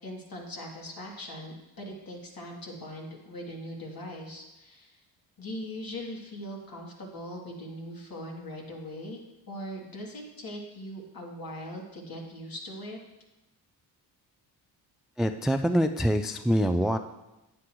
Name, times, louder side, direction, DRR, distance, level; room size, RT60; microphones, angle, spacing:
voice 1, 0.0-5.0 5.4-13.0, equal, 50° left, -2 dB, 2.8 m, -40 dB
voice 2, 15.2-17.0, equal, ahead, 8 dB, 0.3 m, -25 dB
9.7 x 9.3 x 3.1 m, 0.98 s
supercardioid pair, 70°, 45 cm